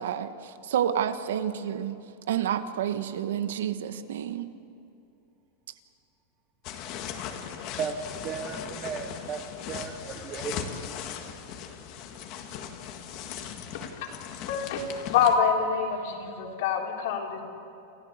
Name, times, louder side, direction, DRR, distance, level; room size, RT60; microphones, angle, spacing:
voice 1, 0.0-2.0 2.3-4.5, right 9 dB, 90° right, 10 dB, 1.4 m, -29 dB
sound 1, 6.6-15.4, left 8 dB, 35° left, 1.8 m, -38 dB
voice 2, 7.8-10.9, right 6 dB, 20° right, 4 dB, 1.1 m, -35 dB
voice 3, 14.5-17.4, left 6 dB, 55° left, 0 dB, 3.7 m, -26 dB
29.0 x 15.5 x 8.2 m, 2.8 s
supercardioid pair, 175°, 0 cm